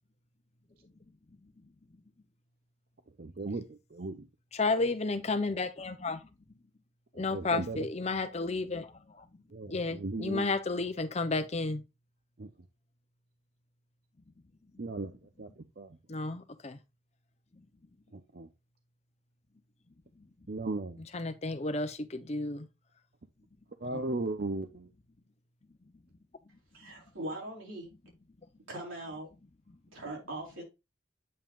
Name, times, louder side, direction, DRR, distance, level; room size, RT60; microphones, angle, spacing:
voice 1, 3.2-4.3 7.3-7.9 9.5-10.5 12.4-12.5 14.8-15.1 15.4-15.5 15.8-15.9 18.1-18.5 20.5-21.0 23.8-24.9, right 2 dB, 50° right, 0.6 m, -36 dB
voice 2, 4.5-6.3 7.1-9.2 9.7-11.8 16.1-16.8 21.0-22.7 23.9-24.0, left 3 dB, 35° left, 0.7 m, -32 dB
voice 3, 26.7-27.9 28.7-29.3 29.9-30.6, right 1 dB, 90° right, 4.3 m, -40 dB
8.7 x 5.6 x 2.4 m
head